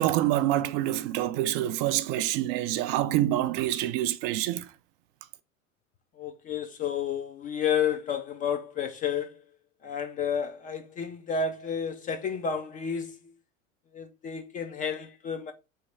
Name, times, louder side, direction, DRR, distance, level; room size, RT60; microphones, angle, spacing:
voice 1, 0.0-4.7, right 13 dB, 45° right, 0.4 m, -26 dB
voice 2, 6.2-9.4 9.8-13.3 13.9-15.5, left 7 dB, 20° left, 0.4 m, -31 dB
3.2 x 3.2 x 4.2 m
hypercardioid pair, 90°, 39 cm